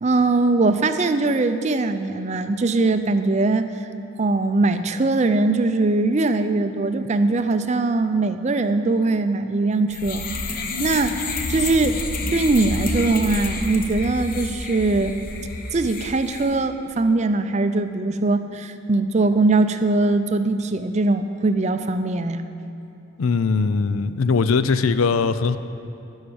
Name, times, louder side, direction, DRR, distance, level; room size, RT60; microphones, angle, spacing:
voice 1, 0.0-3.6 4.2-10.3 10.8-11.2 11.5-12.0 12.3-15.2 15.7-22.4, right 3 dB, 35° right, 9 dB, 0.4 m, -21 dB
sound 1, 9.9-16.6, left 3 dB, 45° left, 0.8 m, -29 dB
voice 2, 23.2-25.6, left 4 dB, 90° left, 12 dB, 0.5 m, -20 dB
11.5 x 6.4 x 8.7 m, 2.7 s
head